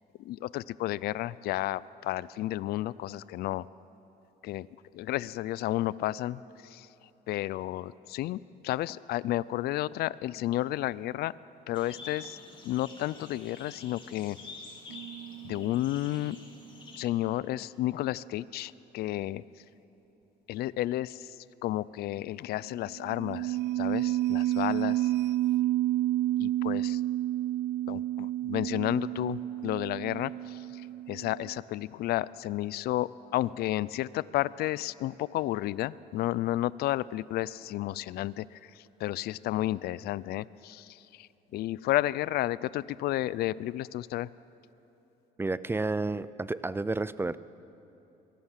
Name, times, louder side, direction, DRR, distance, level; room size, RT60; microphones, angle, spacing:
voice 1, 0.2-3.7 4.4-4.7 4.9-6.9 7.3-11.3 11.7-12.4 12.6-14.4 15.4-16.4 17.0-19.4 20.5-21.3 21.6-25.1 26.4-27.0 27.9-30.8 31.1-38.5 39.0-41.3 41.5-44.3, left 15 dB, 70° left, 20 dB, 0.4 m, -32 dB
sound 1, 11.7-17.0, left 3 dB, 30° left, 3.5 m, -48 dB
sound 2, 14.9-16.1 22.9-31.6, right 14 dB, 85° right, 0.4 m, -30 dB
voice 2, 45.4-47.4, right 3 dB, 15° right, 17 dB, 0.4 m, -31 dB
23.0 x 17.0 x 7.4 m, 3.0 s
cardioid pair, 110°, 17 cm